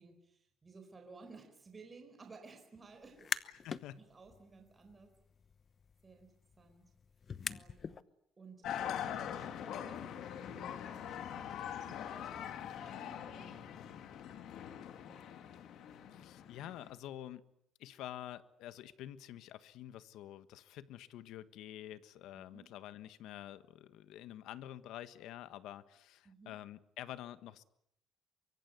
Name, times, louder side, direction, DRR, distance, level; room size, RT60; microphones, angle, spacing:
voice 1, 0.0-3.4 4.0-5.1 6.0-6.9 7.4-7.9 8.4-13.7 15.1-15.4 22.5-22.7 26.2-26.6, right 4 dB, 20° right, 5 dB, 4.4 m, -57 dB
sound 1, 3.0-3.8 4.2-8.0, left 6 dB, 35° left, 1.0 m, -44 dB
voice 2, 3.4-4.0 16.1-17.4 17.8-27.6, left 12 dB, 85° left, 13 dB, 1.4 m, -48 dB
sound 2, 8.6-16.9, left 9 dB, 65° left, 2.4 m, -43 dB
24.0 x 24.0 x 9.4 m, 0.75 s
cardioid pair, 150°, 0 cm